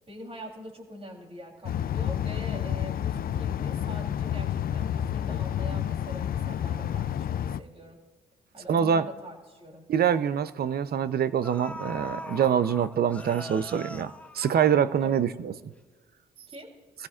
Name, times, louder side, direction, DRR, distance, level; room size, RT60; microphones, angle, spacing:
voice 1, 0.1-8.0 8.5-9.9 15.0-15.5 16.5-16.7, equal, 30° right, 1 dB, 3.4 m, -44 dB
sound 1, 1.6-7.6, left 10 dB, 50° left, 0.4 m, -29 dB
voice 2, 8.7-9.1 9.9-15.5, right 8 dB, 50° right, 14 dB, 0.6 m, -25 dB
sound 2, 9.7-9.9 10.9-11.0 11.4-15.3 15.7-15.8, left 1 dB, 5° left, 0.7 m, -41 dB
22.5 x 15.5 x 2.5 m, 1.4 s
cardioid pair, 90°, 20 cm